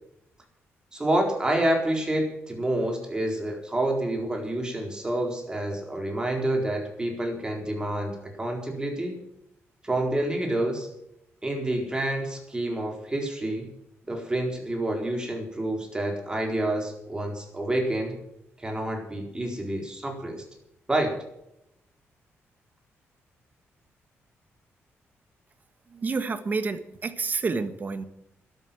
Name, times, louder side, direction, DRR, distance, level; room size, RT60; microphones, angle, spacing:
voice 1, 0.9-9.2 9.8-10.9 11.4-13.7 14.1-18.2 18.6-20.4 20.9-21.1, right 1 dB, 15° right, 2 dB, 4.2 m, -28 dB
voice 2, 25.9-28.0, right 4 dB, 35° right, 11 dB, 1.5 m, -29 dB
13.0 x 12.0 x 7.6 m, 0.81 s
cardioid pair, 120°, 5 cm